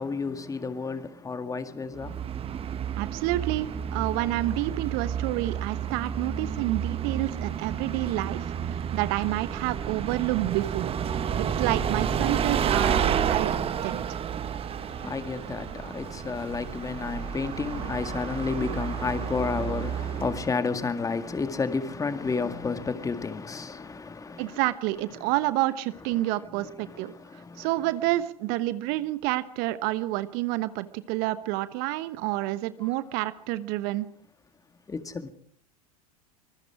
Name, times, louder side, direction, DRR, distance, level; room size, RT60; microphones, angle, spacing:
voice 1, 0.0-2.3 14.8-24.6 25.2-25.3 26.2-27.7 32.8-32.9 34.9-35.3, left 4 dB, 15° left, 2.0 m, -31 dB
Bus, 1.9-20.5, right 8 dB, 30° right, 1.6 m, -30 dB
voice 2, 3.0-10.9 11.3-13.6 13.8-14.2 24.4-27.1 27.6-34.1, right 17 dB, 50° right, 1.1 m, -29 dB
25.0 x 21.0 x 4.9 m
hypercardioid pair, 85°, 20 cm